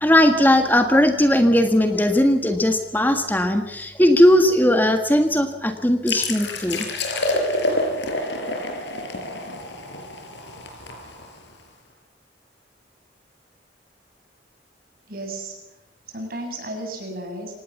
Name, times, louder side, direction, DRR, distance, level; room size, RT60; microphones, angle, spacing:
voice 1, 0.0-6.9, left 1 dB, 10° left, 5 dB, 1.6 m, -18 dB
sound 1, 6.1-11.6, left 2 dB, 85° left, 6.2 m, -27 dB
voice 2, 15.1-15.6 16.1-17.5, right 1 dB, 55° right, 3 dB, 8.0 m, -33 dB
26.0 x 19.0 x 7.2 m, 0.92 s
head